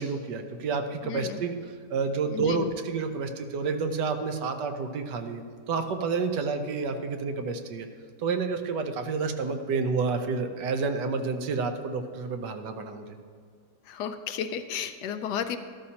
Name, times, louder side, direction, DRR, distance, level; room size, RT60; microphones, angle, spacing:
voice 1, 0.0-1.6 1.9-7.9 8.2-13.1, right 4 dB, 75° right, 7 dB, 1.4 m, -29 dB
voice 2, 1.0-1.4 2.3-2.7 13.9-15.6, left 8 dB, 75° left, 9 dB, 1.1 m, -33 dB
13.0 x 12.5 x 2.9 m, 2.1 s
omnidirectional pair, 1.9 m